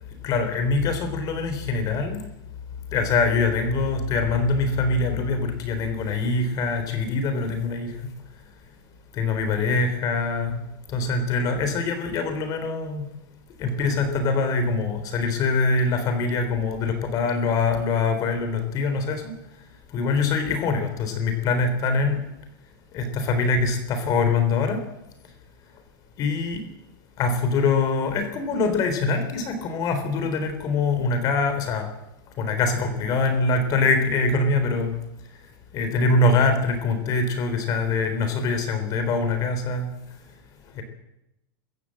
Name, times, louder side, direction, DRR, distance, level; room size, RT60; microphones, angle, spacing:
voice 1, 0.2-2.2 2.9-7.9 9.2-10.6 10.9-13.1 13.6-19.3 19.9-22.2 22.9-24.8 26.2-26.6 27.2-31.9 32.4-34.9 35.7-39.9 40.8-40.9, left 3 dB, 30° left, 7 dB, 3.8 m, -24 dB
27.0 x 15.0 x 7.8 m, 0.88 s
supercardioid pair, 160°, 12 cm